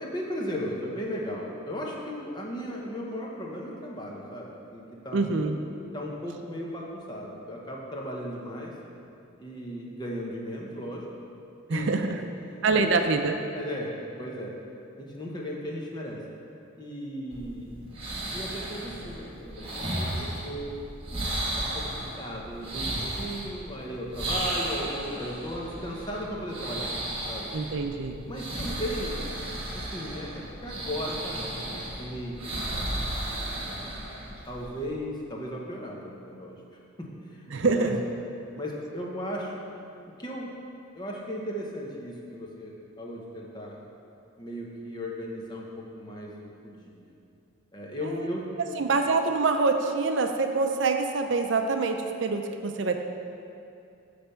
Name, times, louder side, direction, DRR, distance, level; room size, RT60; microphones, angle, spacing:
voice 1, 0.0-5.4 5.9-8.7 9.4-11.1 11.7-11.9 12.8-13.0 13.5-14.5 15.0-16.2 16.8-17.7 18.3-20.8 21.3-21.9 22.2-26.9 27.3-27.5 28.3-29.2 29.7-33.9 34.5-36.6 37.0-38.0 38.5-39.5 40.2-40.5 40.9-43.8 44.4-47.1 47.7-48.8, equal, 20° left, -2 dB, 0.9 m, -36 dB
voice 2, 5.1-5.6 11.7-12.2 12.6-13.3 27.5-28.2 37.5-38.0 48.6-53.0, right 4 dB, 60° right, 5 dB, 0.5 m, -25 dB
sound 1, 17.3-34.8, right 1 dB, 25° right, 1.2 m, -34 dB
9.7 x 3.4 x 6.9 m, 2.6 s
head